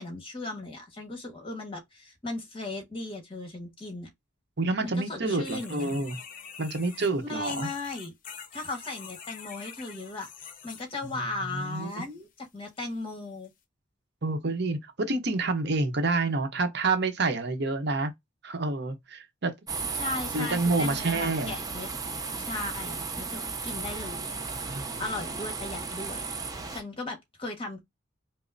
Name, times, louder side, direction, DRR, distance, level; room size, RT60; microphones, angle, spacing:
voice 1, 0.0-4.1 4.8-5.9 7.2-8.1 8.5-10.3 10.6-13.5 19.9-21.9 22.4-24.4 25.0-26.3 26.7-27.8, left 2 dB, 30° left, 1.4 m, -37 dB
voice 2, 4.6-6.2 6.6-7.7 11.5-12.0 14.2-18.1 18.4-19.5 20.3-21.5 24.7-25.0, right 3 dB, 60° right, 0.8 m, -28 dB
sound 1, 5.4-11.2 11.6-12.1 12.8-12.9 13.4-13.5, left 7 dB, 45° left, 0.7 m, -45 dB
sound 2, 19.7-26.8, right 4 dB, 20° right, 0.6 m, -35 dB
5.1 x 2.0 x 2.6 m
head